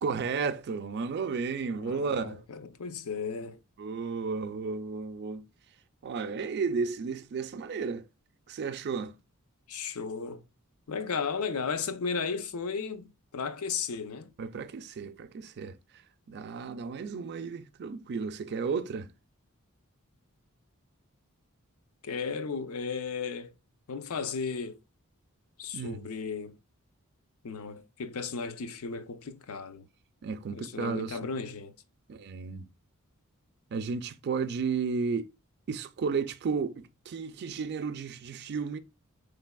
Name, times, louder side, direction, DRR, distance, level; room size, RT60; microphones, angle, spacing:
voice 1, 0.0-2.4 3.8-5.5 6.0-8.0 8.5-9.1 14.4-15.8 16.3-19.1 25.7-26.1 30.2-31.3 32.1-32.7 33.7-35.3 35.7-38.8, right 5 dB, 50° right, 0.4 m, -33 dB
voice 2, 1.7-3.6 9.7-10.4 10.9-14.3 22.0-23.5 23.9-24.8 25.6-26.6 27.4-29.9 30.5-31.7, left 5 dB, 75° left, 0.5 m, -35 dB
4.6 x 3.3 x 2.2 m
head